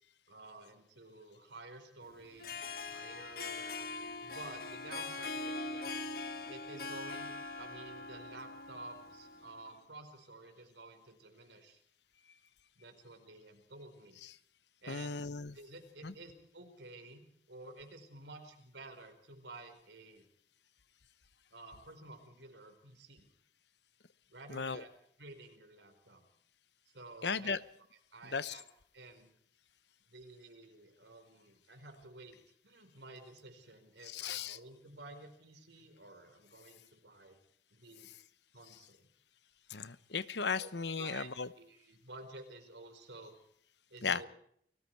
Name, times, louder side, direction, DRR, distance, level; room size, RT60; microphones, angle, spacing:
voice 1, 0.3-4.0 4.2-6.0 6.5-7.3 7.6-11.8 12.8-14.2 14.8-15.2 15.5-20.2 21.5-23.3 24.3-24.9 25.2-26.2 26.9-27.5 28.1-28.6 28.9-29.3 30.1-32.4 32.6-37.4 37.7-38.1 38.5-39.1 40.6-40.7 41.0-41.3 41.5-43.3 43.9-44.3, right 2 dB, 85° right, 6 dB, 4.7 m, -52 dB
Harp, 2.3-9.6, left 3 dB, 55° left, 1.5 m, -42 dB
voice 2, 14.9-15.6 16.0-16.1 24.5-24.8 27.2-27.6 28.3-28.6 34.0-34.6 39.7-41.5 44.0-44.3, left 5 dB, 80° left, 15 dB, 1.0 m, -36 dB
29.5 x 19.5 x 4.7 m, 0.67 s
head